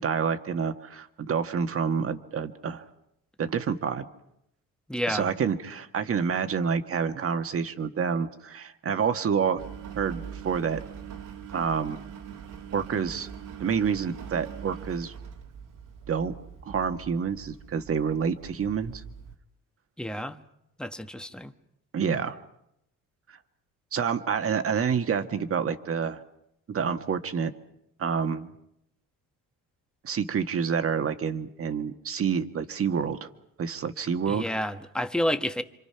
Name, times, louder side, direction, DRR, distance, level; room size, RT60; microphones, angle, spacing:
voice 1, 0.0-2.8 3.4-4.1 5.1-9.6 9.9-10.8 11.5-12.0 12.7-13.3 13.6-15.1 16.1-16.4 16.6-19.0 21.9-22.4 23.9-26.2 26.7-27.5 28.0-28.5 30.0-33.3 33.6-34.4, right 6 dB, 40° right, 8 dB, 1.6 m, -28 dB
voice 2, 4.9-5.3 20.0-20.4 20.8-21.5 34.3-35.6, equal, ahead, 8 dB, 1.2 m, -30 dB
Engine, 9.6-19.4, right 7 dB, 65° right, 2.2 m, -43 dB
28.0 x 25.5 x 5.8 m, 0.80 s
cardioid pair, 120°, 34 cm